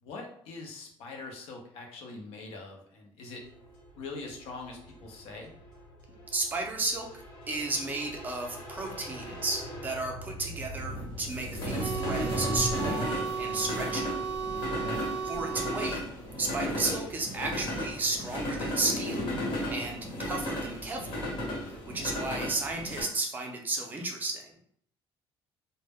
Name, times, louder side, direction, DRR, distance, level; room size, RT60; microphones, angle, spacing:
voice 1, 0.0-3.4 4.0-5.5 14.7-15.0, left 3 dB, 75° left, 1 dB, 0.6 m, -43 dB
sound 1, 3.5-23.0, equal, 50° left, 0.9 m, -36 dB
voice 2, 6.3-14.1 15.2-16.0 16.4-19.2 19.7-21.4 21.9-24.5, right 3 dB, 20° right, 1 dB, 0.4 m, -33 dB
sound 2, 11.8-16.0, right 6 dB, 90° right, 0.4 m, -34 dB
2.1 x 2.0 x 3.4 m, 0.64 s
cardioid pair, 175°, 10 cm